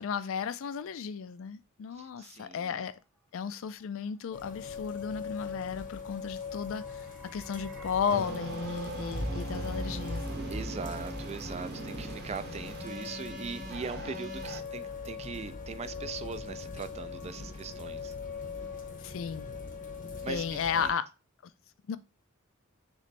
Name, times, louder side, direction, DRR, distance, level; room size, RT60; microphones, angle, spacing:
voice 1, 0.0-3.0 3.3-7.0 7.3-10.2 19.0-19.5 20.3-21.1 21.4-21.5 21.9-22.0, left 6 dB, 70° left, 0.4 m, -34 dB
voice 2, 2.0-2.8 10.5-18.1 20.2-20.9, right 5 dB, 30° right, 0.3 m, -41 dB
sound 1, 4.3-20.9, left 5 dB, 40° left, 0.7 m, -42 dB
sound 2, 6.4-14.5 14.8-14.9, equal, ahead, 0.7 m, -41 dB
sound 3, 8.1-14.6, right 2 dB, 50° right, 0.8 m, -42 dB
3.1 x 3.1 x 4.2 m
head